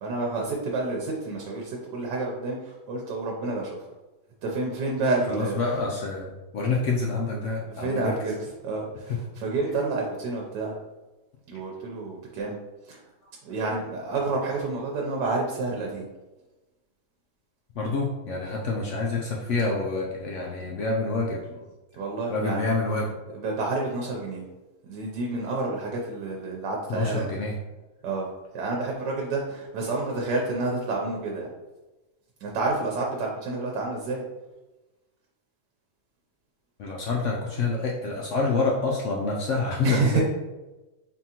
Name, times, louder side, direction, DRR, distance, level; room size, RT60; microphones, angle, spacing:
voice 1, 0.0-3.8 4.4-5.6 7.7-8.4 8.6-10.7 11.5-12.6 12.9-13.0 13.4-16.1 22.0-22.6 23.4-24.4 24.8-27.3 28.0-28.3 28.5-31.5 32.4-34.2 39.8-40.2, right 3 dB, 90° right, -1 dB, 1.3 m, -29 dB
voice 2, 5.3-8.2 9.1-9.2 17.8-21.7 22.3-23.2 26.9-27.6 36.8-40.2, left 3 dB, 70° left, -2 dB, 0.7 m, -27 dB
4.1 x 3.6 x 2.8 m, 1.1 s
omnidirectional pair, 1.8 m